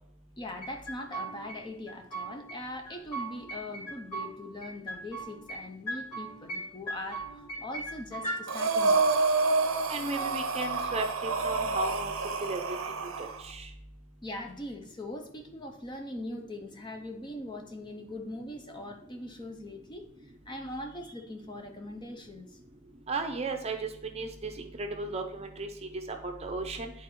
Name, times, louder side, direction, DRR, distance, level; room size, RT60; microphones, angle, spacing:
voice 1, 0.4-9.1 12.7-12.8 14.2-22.6, left 1 dB, 20° left, 4 dB, 0.5 m, -41 dB
sound 1, 0.6-1.6 1.9-2.6 2.9-4.3 4.6-5.6 5.9-6.6 6.9-8.4, right 2 dB, 90° left, 2.7 m, -38 dB
Breathing, 8.5-13.4, right 3 dB, 70° right, 0.6 m, -28 dB
voice 2, 9.9-12.1 12.4-12.6 13.2-13.7 23.1-25.7 26.2-26.9, right 3 dB, 30° right, 5 dB, 0.6 m, -35 dB
9.7 x 4.1 x 3.1 m, 0.79 s
head